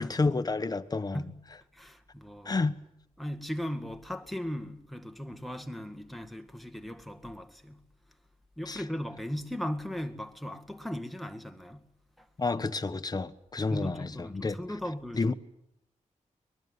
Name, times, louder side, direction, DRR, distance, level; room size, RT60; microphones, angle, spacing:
voice 1, 0.0-1.2 2.4-2.8 8.7-8.8 12.4-14.6 15.2-15.3, left 3 dB, 30° left, 1.2 m, -30 dB
voice 2, 1.7-2.6 3.2-7.9 8.6-11.9 12.2-12.3 13.7-15.3, equal, ahead, 1.9 m, -38 dB
23.5 x 21.0 x 9.6 m
wide cardioid pair, 130°, 13 cm